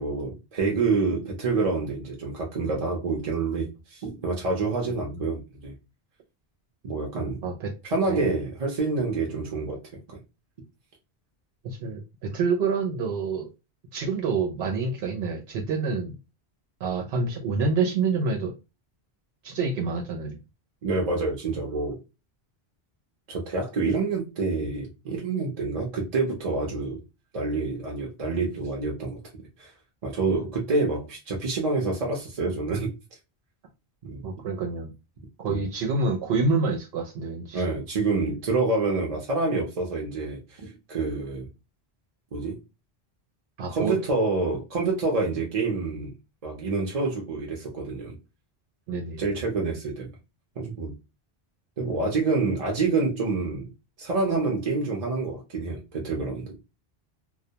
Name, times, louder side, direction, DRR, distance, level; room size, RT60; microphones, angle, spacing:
voice 1, 0.0-5.7 6.8-7.4 7.8-9.8 10.1-10.2 20.8-22.0 23.3-27.0 27.3-29.2 29.6-29.7 30.0-32.9 34.0-34.2 35.5-35.6 37.5-41.5 42.3-42.6 43.7-46.1 46.4-48.2 49.2-50.1 50.6-50.9 51.8-53.7 54.0-56.6, right 3 dB, 45° right, 0.6 m, -27 dB
voice 2, 8.0-8.3 11.6-13.5 13.9-16.1 16.8-18.5 19.4-20.4 34.2-34.9 35.4-37.6 43.6-43.9 48.9-49.3, right 4 dB, 80° right, 0.8 m, -27 dB
2.2 x 2.1 x 2.7 m
omnidirectional pair, 1.1 m